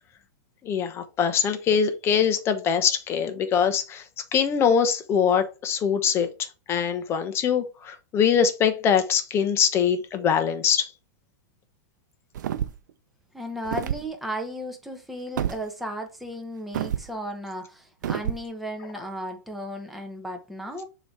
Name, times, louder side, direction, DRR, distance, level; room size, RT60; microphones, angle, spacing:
voice 1, 0.6-4.0 4.3-6.3 6.7-10.9, left 7 dB, 25° left, 1.0 m, -23 dB
sound 1, 12.3-12.9 13.6-14.1 15.4-15.6 16.7-17.1 18.0-18.4, right 10 dB, 75° right, 0.6 m, -28 dB
voice 2, 13.3-20.8, equal, ahead, 1.2 m, -35 dB
7.0 x 3.2 x 4.7 m
supercardioid pair, 145°, 10 cm